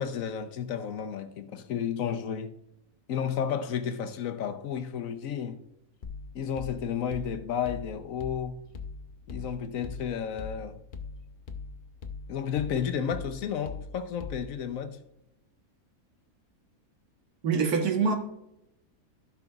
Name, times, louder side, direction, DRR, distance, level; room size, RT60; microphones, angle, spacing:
voice 1, 0.0-2.5 3.1-5.6 6.3-8.6 9.3-10.8 12.3-15.0, left 8 dB, 70° left, 1.1 m, -32 dB
sound 1, 6.0-14.7, left 4 dB, 45° left, 0.7 m, -42 dB
voice 2, 17.4-18.2, right 5 dB, 90° right, 1.7 m, -24 dB
15.5 x 5.8 x 2.4 m
omnidirectional pair, 1.6 m